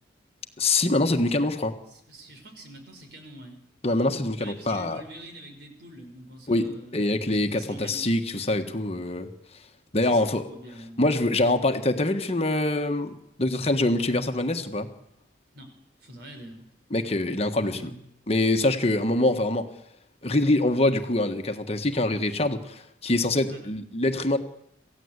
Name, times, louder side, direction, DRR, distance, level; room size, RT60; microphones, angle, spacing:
voice 1, 0.6-1.8 3.8-5.0 6.5-9.3 9.9-10.4 11.0-13.1 13.4-14.9 16.9-17.9 18.3-19.7 20.2-24.4, left 2 dB, 35° left, 6 dB, 1.5 m, -24 dB
voice 2, 1.9-3.6 4.4-8.1 10.0-11.0 15.5-15.7 16.0-16.7 17.6-18.0 23.4-23.6, right 1 dB, 60° right, 5 dB, 5.5 m, -45 dB
27.0 x 16.0 x 8.2 m, 0.78 s
head